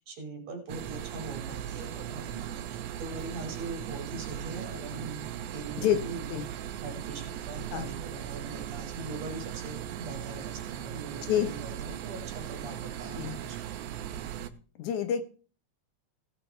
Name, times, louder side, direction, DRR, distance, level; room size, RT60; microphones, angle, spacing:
voice 1, 0.0-6.2 6.8-13.8, right 3 dB, 65° right, 3 dB, 4.0 m, -42 dB
sound 1, 0.7-14.5, right 10 dB, 85° right, 2.2 m, -38 dB
voice 2, 14.8-15.2, left 10 dB, 85° left, 10 dB, 2.6 m, -27 dB
16.5 x 6.9 x 4.6 m, 0.39 s
omnidirectional pair, 3.4 m